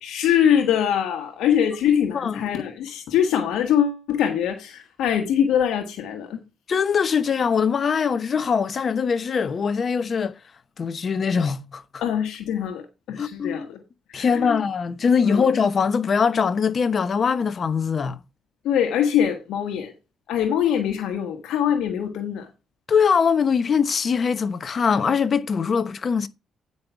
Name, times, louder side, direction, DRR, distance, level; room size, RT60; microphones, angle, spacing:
voice 1, 0.0-6.4 12.0-13.8 14.1-14.6 15.2-15.5 18.6-19.9 20.3-22.5, left 9 dB, 85° left, 1.4 m, -23 dB
voice 2, 6.7-10.4 10.8-11.8 13.2-13.7 14.1-18.2 22.9-26.3, left 6 dB, 45° left, 1.0 m, -22 dB
9.6 x 5.6 x 4.6 m
cardioid pair, 90°, 0 cm